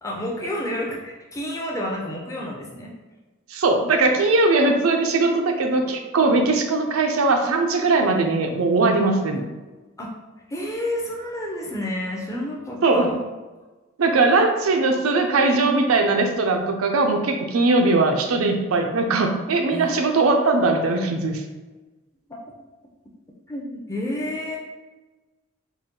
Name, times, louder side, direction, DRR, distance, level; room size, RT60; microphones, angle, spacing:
voice 1, 0.0-2.9 9.3-9.5 10.0-10.1 10.5-13.2 19.7-19.9 23.5-24.6, left 1 dB, 15° left, -2 dB, 0.6 m, -30 dB
voice 2, 3.5-9.4 12.8-13.2 14.0-21.4, right 3 dB, 85° right, 4 dB, 0.5 m, -20 dB
4.0 x 2.3 x 3.6 m, 1.2 s
head